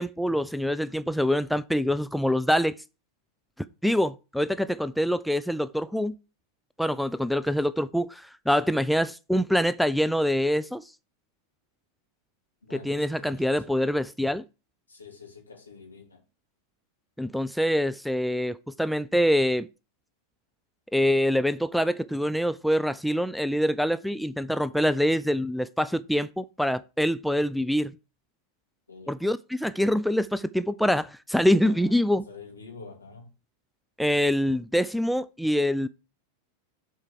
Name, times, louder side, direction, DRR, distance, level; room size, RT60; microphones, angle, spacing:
voice 1, 0.0-2.8 3.8-6.1 6.8-10.8 12.7-14.4 17.2-19.7 20.9-27.9 29.1-32.2 34.0-35.9, equal, ahead, 0.3 m, -25 dB
voice 2, 12.6-13.8 14.9-16.2 28.9-29.1 31.6-33.3, left 4 dB, 80° left, 2.4 m, -47 dB
7.4 x 4.6 x 6.4 m
figure-of-eight pair, 90°, 0 cm